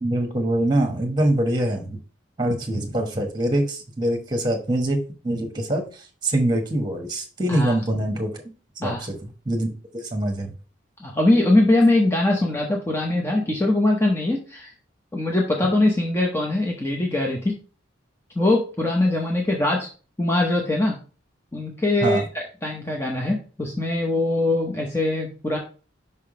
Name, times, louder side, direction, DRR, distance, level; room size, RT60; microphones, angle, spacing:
voice 1, 0.0-2.0 2.4-5.0 5.2-8.3 8.8-9.2 9.4-10.5 22.0-22.2, right 1 dB, 20° right, 4 dB, 1.2 m, -24 dB
voice 2, 11.0-14.7 15.1-17.6 18.4-19.9 20.2-20.9 21.5-25.6, left 2 dB, 10° left, 0 dB, 0.7 m, -22 dB
5.6 x 3.6 x 4.8 m, 0.37 s
head